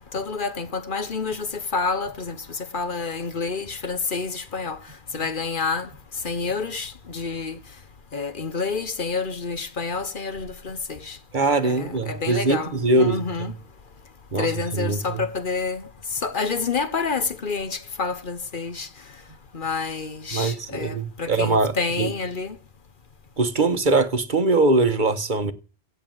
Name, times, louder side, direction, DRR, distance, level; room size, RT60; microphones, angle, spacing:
voice 1, 0.0-4.8 5.1-5.9 6.2-7.6 8.1-11.2 11.6-13.5 14.4-15.9 16.2-18.9 19.5-22.6, left 4 dB, 55° left, 1.2 m, -28 dB
voice 2, 11.3-13.5 14.3-15.2 20.3-22.1 23.4-25.5, right 3 dB, 50° right, 1.3 m, -22 dB
16.5 x 5.7 x 7.8 m
omnidirectional pair, 1.1 m